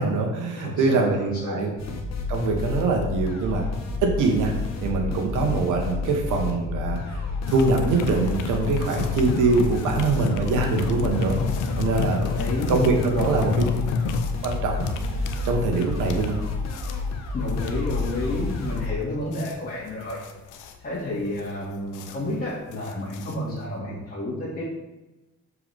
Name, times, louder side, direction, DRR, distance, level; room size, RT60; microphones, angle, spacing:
voice 1, 0.0-1.7 2.3-3.6 4.0-4.5 4.8-7.2 7.5-11.4 11.8-12.4 12.7-13.6 14.4-14.9 15.4-16.4 23.9-24.0, right 3 dB, 85° right, 2 dB, 1.4 m, -23 dB
voice 2, 0.5-1.1 1.4-1.6 12.3-12.8 17.3-20.2 20.8-24.6, left 1 dB, 30° left, -8 dB, 2.3 m, -30 dB
sound 1, 1.8-18.9, left 3 dB, 60° left, 1.1 m, -30 dB
sound 2, 7.5-23.8, left 5 dB, 80° left, 0.7 m, -31 dB
7.3 x 4.8 x 3.5 m, 1.1 s
cardioid pair, 90°, 30 cm